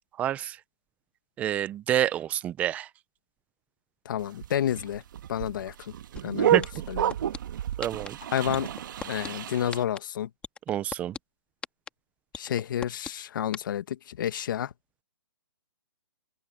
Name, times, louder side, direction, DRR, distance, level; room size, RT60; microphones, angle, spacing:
voice 1, 0.2-0.6 1.4-2.9 6.5-6.6 7.8-8.2 10.7-11.2, right 11 dB, 10° right, 0.5 m, -28 dB
voice 2, 4.0-5.0 5.3-5.9 6.2-7.1 8.3-8.7 9.0-10.3 12.3-14.7, left 10 dB, 50° left, 1.6 m, -30 dB
sound 1, 4.2-9.8, right 11 dB, 45° right, 1.5 m, -30 dB
sound 2, 6.2-6.3 6.6-7.4 7.8-8.1 8.5-9.3 9.7-10.0 10.4-11.2 11.6-11.9 12.3-13.1 13.5-13.6, left 6 dB, 10° left, 2.0 m, -36 dB
open air
hypercardioid pair, 165°, 14 cm